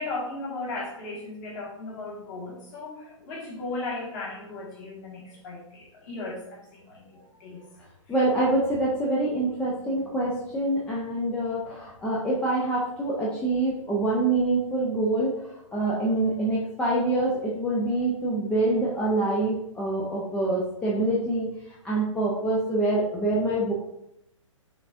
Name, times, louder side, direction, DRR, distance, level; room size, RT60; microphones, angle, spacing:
voice 1, 0.0-7.6, left 2 dB, 35° left, -4 dB, 1.7 m, -36 dB
voice 2, 8.1-15.3 15.7-21.5 21.8-23.7, right 2 dB, 5° left, -5 dB, 0.5 m, -25 dB
5.7 x 3.2 x 2.6 m, 0.81 s
figure-of-eight pair, 130°, 17 cm